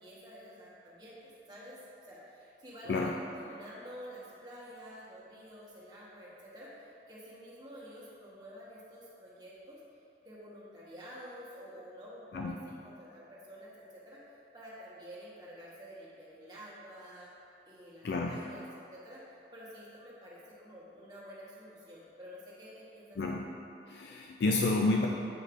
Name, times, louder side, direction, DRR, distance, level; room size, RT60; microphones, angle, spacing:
voice 1, 0.0-9.8 10.2-17.3 17.7-18.6 18.9-19.2 19.5-23.2, equal, 20° right, -8 dB, 1.2 m, -49 dB
voice 2, 18.0-18.4 23.2-23.4 23.9-25.1, left 3 dB, 65° left, 0 dB, 0.3 m, -29 dB
7.8 x 5.2 x 2.5 m, 2.7 s
head